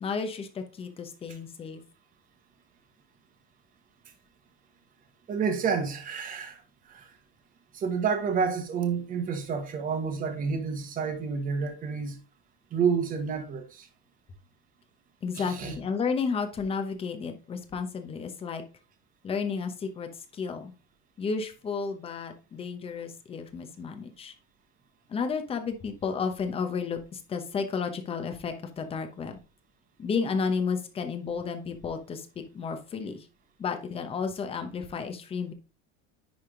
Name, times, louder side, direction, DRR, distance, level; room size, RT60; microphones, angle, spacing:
voice 1, 0.0-1.8 15.2-18.6 19.2-20.7 21.2-24.3 25.1-29.4 30.0-33.3 33.6-35.5, left 5 dB, 20° left, 0.8 m, -32 dB
voice 2, 5.3-7.1 7.7-12.2 12.7-13.9 15.3-15.8, right 6 dB, 25° right, 1.2 m, -29 dB
10.5 x 3.5 x 3.7 m
cardioid pair, 170°, 30 cm